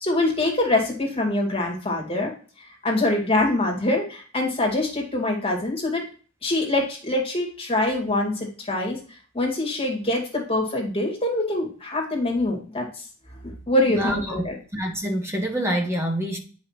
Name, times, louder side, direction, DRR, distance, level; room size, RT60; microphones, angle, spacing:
voice 1, 0.0-2.3 2.6-6.0 6.4-9.0 9.3-12.9 13.4-14.5, left 2 dB, 30° left, 2.4 m, -24 dB
voice 2, 13.9-14.5 14.7-16.4, equal, 15° right, 1.5 m, -26 dB
8.7 x 5.3 x 2.8 m
head